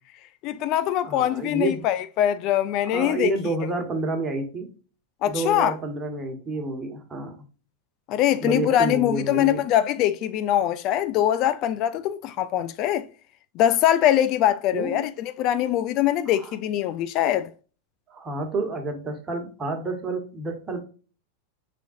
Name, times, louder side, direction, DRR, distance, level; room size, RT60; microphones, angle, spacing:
voice 1, 0.4-3.3 5.2-5.7 8.1-13.1 13.6-17.5, left 11 dB, 50° left, 0.3 m, -23 dB
voice 2, 1.0-1.9 2.8-4.7 5.3-7.4 8.4-9.7 14.7-15.1 16.3-16.5 18.1-20.8, right 2 dB, 25° right, 1.3 m, -29 dB
5.2 x 3.6 x 2.6 m
hypercardioid pair, 105°, 0 cm